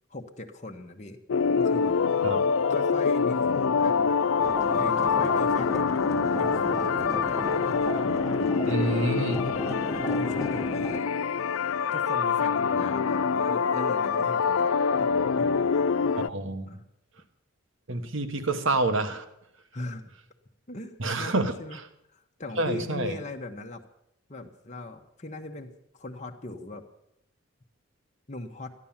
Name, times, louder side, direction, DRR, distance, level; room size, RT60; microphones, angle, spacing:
voice 1, 0.1-2.2 2.7-4.2 4.7-7.8 8.6-9.2 9.9-11.1 11.9-15.1 15.4-15.9 16.7-16.8 19.7-20.0 20.7-21.8 22.1-23.8 24.3-26.8 28.3-28.7, left 2 dB, 35° left, 3 dB, 1.1 m, -39 dB
sound 1, 1.3-16.3, left 5 dB, 75° left, 0.4 m, -25 dB
sound 2, 4.4-11.0, left 1 dB, 15° left, 1.4 m, -34 dB
voice 2, 8.7-9.4 16.1-16.7 17.9-19.2 21.0-21.8 22.6-23.2, right 2 dB, 65° right, 9 dB, 1.3 m, -28 dB
14.5 x 11.0 x 7.3 m, 0.81 s
head